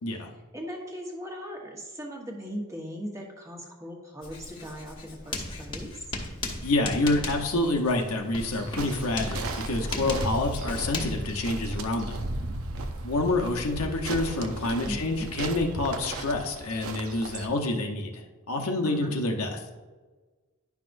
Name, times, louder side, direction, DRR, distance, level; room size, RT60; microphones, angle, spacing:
voice 1, 0.5-5.9 14.8-15.3 18.8-19.1, equal, 15° right, -1 dB, 1.2 m, -38 dB
Writing, 4.2-12.9, left 2 dB, 20° left, 1.0 m, -37 dB
voice 2, 6.6-12.2 13.0-18.1 18.5-19.6, left 2 dB, 80° left, 1 dB, 1.0 m, -27 dB
sound 1, 8.4-17.5, right 2 dB, 70° right, 0.7 m, -36 dB
10.5 x 5.9 x 2.6 m, 1.3 s
head